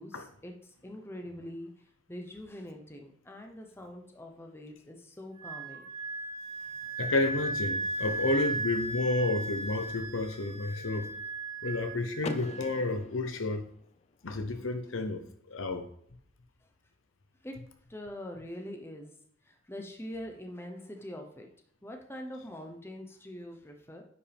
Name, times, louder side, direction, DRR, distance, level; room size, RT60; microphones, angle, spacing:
voice 1, 0.0-1.7 2.1-5.8 17.4-17.6 17.9-19.1 19.4-21.5 21.8-24.0, left 1 dB, 10° left, 0.8 m, -43 dB
Wind instrument woodwind instrument, 5.4-12.8, right 2 dB, 25° right, 2.1 m, -36 dB
voice 2, 7.0-11.1 11.6-13.6 14.2-15.9, left 2 dB, 70° left, 0.9 m, -31 dB
Car / Door, 12.2-14.1, left 4 dB, 30° left, 0.3 m, -42 dB
9.5 x 5.3 x 3.5 m
head